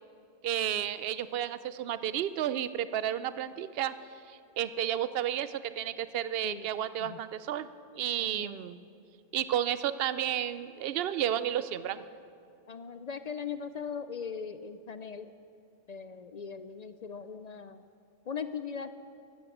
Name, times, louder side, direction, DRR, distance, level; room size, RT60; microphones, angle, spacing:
voice 1, 0.4-3.9 4.3-7.7 7.9-8.8 9.3-12.1, right 11 dB, 75° right, 14 dB, 0.8 m, -32 dB
voice 2, 8.2-8.7 12.7-15.3 15.9-17.8 18.3-18.9, left 6 dB, 50° left, 11 dB, 0.5 m, -40 dB
15.0 x 12.0 x 7.2 m, 2.5 s
omnidirectional pair, 1.0 m